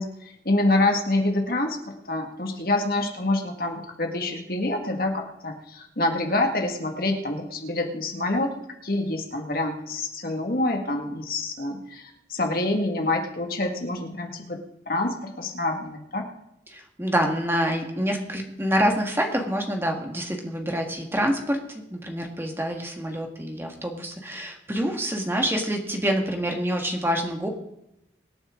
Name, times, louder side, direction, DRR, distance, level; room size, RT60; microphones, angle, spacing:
voice 1, 0.0-14.6 14.9-16.3, left 2 dB, 55° left, 3 dB, 2.0 m, -26 dB
voice 2, 16.7-27.5, equal, 15° right, 2 dB, 1.8 m, -26 dB
24.5 x 9.1 x 3.8 m, 0.85 s
head